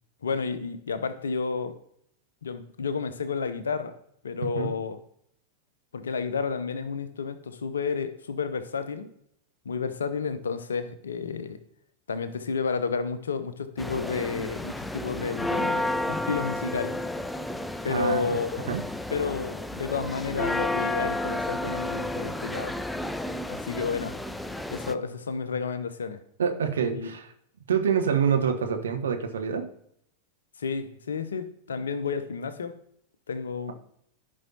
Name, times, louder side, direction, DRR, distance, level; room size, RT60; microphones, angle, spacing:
voice 1, 0.2-1.8 2.4-4.0 4.2-5.0 5.9-9.1 9.6-11.6 12.1-17.0 17.8-18.8 19.1-22.8 23.5-24.2 24.7-26.2 26.9-27.1 30.6-32.8 33.3-33.7, left 5 dB, 70° left, 12 dB, 0.7 m, -31 dB
sound 1, 13.8-24.9, left 1 dB, 5° left, 0.4 m, -32 dB
voice 2, 17.9-18.4 18.7-18.8 26.4-27.3 27.7-29.6, right 7 dB, 65° right, 6 dB, 1.1 m, -26 dB
14.0 x 5.4 x 2.9 m, 0.72 s
figure-of-eight pair, 90°, 0 cm